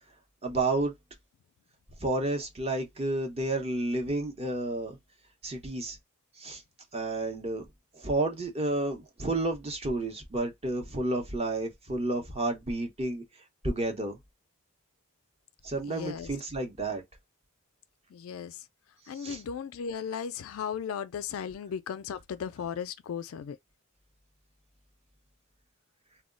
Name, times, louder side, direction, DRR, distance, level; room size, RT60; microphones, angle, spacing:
voice 1, 0.4-0.9 2.0-5.0 5.4-6.0 6.4-6.6 6.9-7.6 7.9-13.2 13.6-14.2 15.6-17.0 19.1-19.4, right 2 dB, 30° right, 0.7 m, -31 dB
voice 2, 15.8-16.3 18.1-18.6 19.1-23.6, left 7 dB, 70° left, 0.3 m, -36 dB
2.2 x 2.1 x 3.6 m
head